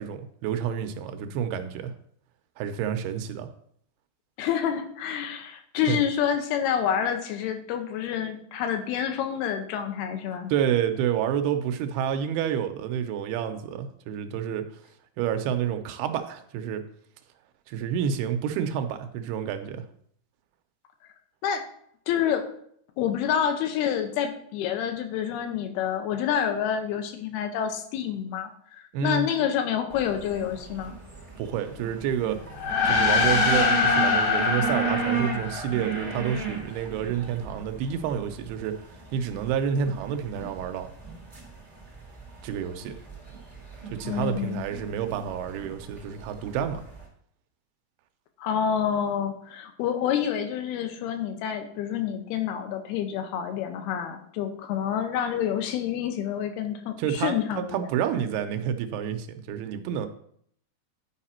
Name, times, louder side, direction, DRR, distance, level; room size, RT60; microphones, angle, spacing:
voice 1, 0.0-1.9 2.6-3.5 5.9-6.0 10.5-14.7 15.2-16.8 17.7-19.8 28.9-29.3 31.4-32.4 32.8-38.8 39.1-40.9 42.4-42.9 43.9-46.8 57.0-60.1, right 8 dB, 85° right, 7 dB, 2.7 m, -29 dB
voice 2, 4.4-10.5 21.4-21.6 22.1-22.5 23.0-30.9 44.0-44.7 48.4-57.9, left 9 dB, 85° left, 6 dB, 2.9 m, -28 dB
sound 1, 29.9-47.1, right 4 dB, 40° right, 0.5 m, -36 dB
sound 2, 32.5-36.2, left 4 dB, 65° left, 1.9 m, -24 dB
10.5 x 4.9 x 4.3 m, 0.66 s
omnidirectional pair, 4.4 m